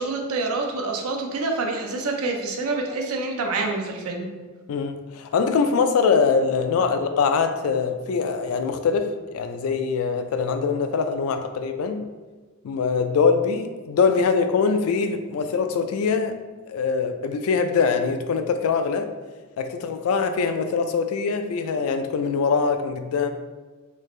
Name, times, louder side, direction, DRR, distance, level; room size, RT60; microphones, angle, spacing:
voice 1, 0.0-4.3, right 3 dB, 80° right, 2 dB, 0.5 m, -27 dB
voice 2, 4.7-12.1 12.6-16.4 16.7-19.1 19.6-23.3, left 5 dB, 75° left, 7 dB, 0.3 m, -23 dB
3.2 x 2.4 x 3.2 m, 1.3 s
head